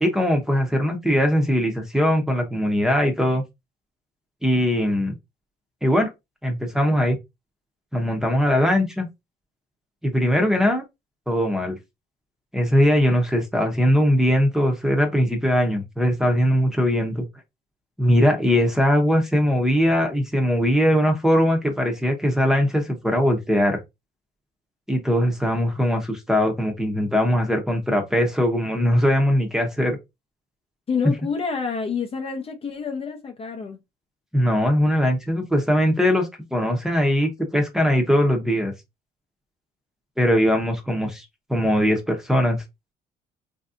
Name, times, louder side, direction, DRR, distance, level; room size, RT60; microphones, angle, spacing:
voice 1, 0.0-3.4 4.4-5.1 5.8-6.1 6.4-7.2 7.9-9.1 10.0-10.8 11.3-11.8 12.5-17.2 18.0-23.8 24.9-30.0 34.3-38.7 40.2-41.2 41.5-42.6, equal, 5° right, 0.8 m, -20 dB
voice 2, 30.9-33.8, left 5 dB, 35° left, 0.6 m, -28 dB
3.2 x 2.7 x 2.4 m
cardioid pair, 110°, 17 cm